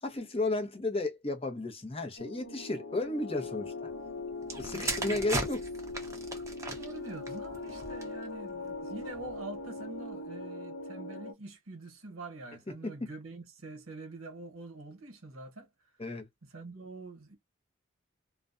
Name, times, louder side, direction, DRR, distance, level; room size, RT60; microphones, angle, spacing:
voice 1, 0.0-3.9 4.6-5.6 16.0-16.3, left 2 dB, 25° left, 0.7 m, -33 dB
sound 1, 2.2-11.3, left 2 dB, 55° left, 0.9 m, -40 dB
sound 2, 4.4-8.3 9.0-9.3, right 2 dB, 15° right, 0.6 m, -37 dB
voice 2, 4.7-5.3 6.5-15.7 16.5-17.4, right 2 dB, 80° right, 1.0 m, -45 dB
2.4 x 2.2 x 2.4 m
head